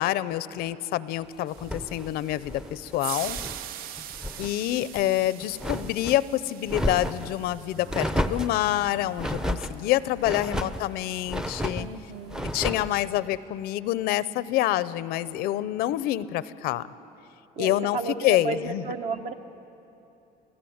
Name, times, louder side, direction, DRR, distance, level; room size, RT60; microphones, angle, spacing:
voice 1, 0.0-3.4 4.4-11.9 12.5-16.9 17.6-18.0 18.2-18.8, left 14 dB, 75° left, 16 dB, 0.6 m, -27 dB
sound 1, 1.5-9.8, right 11 dB, 65° right, 0.7 m, -42 dB
sound 2, 1.6-3.6 4.0-4.5 4.9-6.2 6.6-7.3 7.9-8.6 9.2-9.7 10.2-10.8 11.3-11.9 12.3-12.9, equal, 5° right, 0.6 m, -32 dB
sound 3, 7.7-10.6, equal, 85° right, 6.4 m, -47 dB
voice 2, 10.4-11.0 11.8-12.5 17.6-19.3, right 4 dB, 45° right, 8 dB, 1.2 m, -34 dB
28.0 x 16.5 x 8.7 m, 3.0 s
cardioid pair, 155°, 16 cm